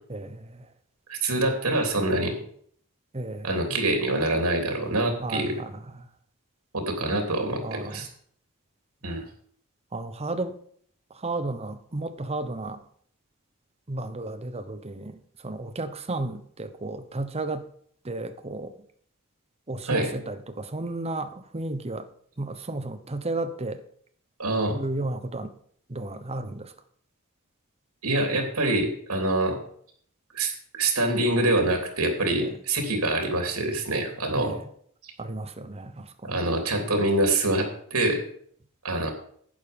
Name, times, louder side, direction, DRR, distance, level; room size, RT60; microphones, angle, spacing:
voice 1, 0.1-0.7 3.1-3.8 5.2-6.1 7.6-8.0 9.9-10.6 11.1-12.8 13.9-17.7 18.0-18.7 19.7-22.1 22.4-23.8 24.7-25.5 25.9-26.7 32.4-32.6 34.3-34.6 35.2-36.3, right 2 dB, 30° right, 9 dB, 0.9 m, -33 dB
voice 2, 1.1-2.3 3.4-5.6 6.7-8.1 9.0-9.3 19.9-20.1 24.4-24.8 28.0-29.6 30.3-34.5 35.0-35.1 36.2-38.2 38.8-39.1, right 2 dB, 85° right, 3 dB, 3.1 m, -25 dB
11.5 x 9.1 x 5.3 m, 0.62 s
head